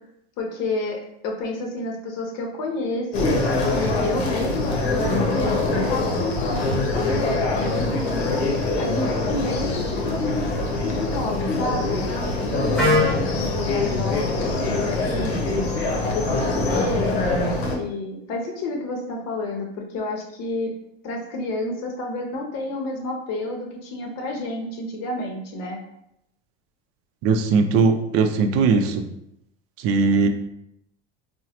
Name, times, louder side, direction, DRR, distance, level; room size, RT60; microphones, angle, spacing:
voice 1, 0.4-3.4 3.7-8.4 8.8-12.0 12.3-15.7 16.0-17.2 17.7-20.7 21.0-25.8, left 2 dB, 55° left, 1 dB, 0.7 m, -30 dB
sound 1, 3.1-17.8, left 2 dB, 85° left, 0.7 m, -24 dB
Wind instrument woodwind instrument, 12.7-16.6, left 2 dB, ahead, 0.9 m, -28 dB
voice 2, 27.2-29.0 29.8-30.3, right 4 dB, 50° right, 7 dB, 0.5 m, -19 dB
3.8 x 2.1 x 2.8 m, 0.79 s
hypercardioid pair, 95°, 31 cm